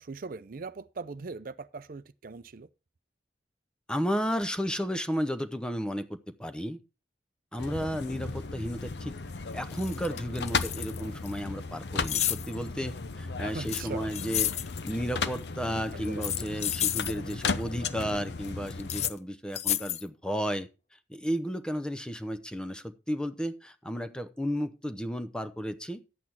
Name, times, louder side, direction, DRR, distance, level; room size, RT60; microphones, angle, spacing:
voice 1, 0.0-2.7 13.4-14.1 15.7-16.3, right 4 dB, 55° right, 0.5 m, -41 dB
voice 2, 3.9-6.8 7.5-9.1 9.5-14.5 14.8-20.7 21.1-26.0, equal, 5° left, 0.7 m, -33 dB
sound 1, 7.6-19.1, left 4 dB, 70° left, 0.7 m, -35 dB
sound 2, 9.2-9.3 9.7-11.3 12.0-12.5 13.7-14.7 16.0-17.1 18.8-19.1 19.5-20.0, left 12 dB, 40° left, 0.5 m, -31 dB
11.0 x 8.4 x 4.3 m
head